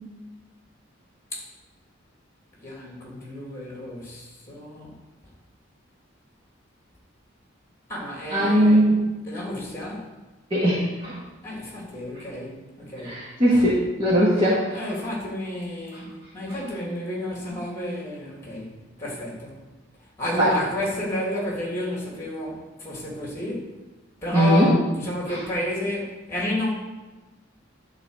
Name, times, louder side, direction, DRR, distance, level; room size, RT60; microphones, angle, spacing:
voice 1, 2.6-4.9 7.9-8.8 9.3-10.1 11.4-13.7 14.7-19.6 20.2-23.7 24.2-26.7, left 1 dB, 15° left, -3 dB, 2.8 m, -31 dB
voice 2, 8.3-9.1 10.5-11.2 13.0-14.8 20.3-20.5 24.3-24.7 25.3-25.4, equal, 30° right, -7 dB, 1.8 m, -20 dB
12.0 x 4.1 x 6.6 m, 1.2 s
head